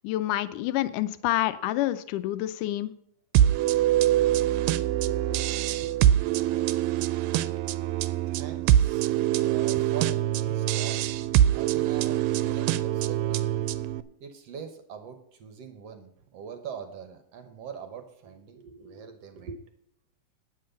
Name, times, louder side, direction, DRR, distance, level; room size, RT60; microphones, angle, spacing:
voice 1, 0.0-2.9, left 15 dB, 80° left, 12 dB, 2.1 m, -28 dB
sound 1, 3.3-14.0, right 12 dB, 85° right, 2.2 m, -24 dB
voice 2, 5.0-6.7 8.3-13.7 14.2-19.6, right 6 dB, 65° right, 6 dB, 1.8 m, -43 dB
9.5 x 9.4 x 5.2 m, 0.70 s
omnidirectional pair, 3.9 m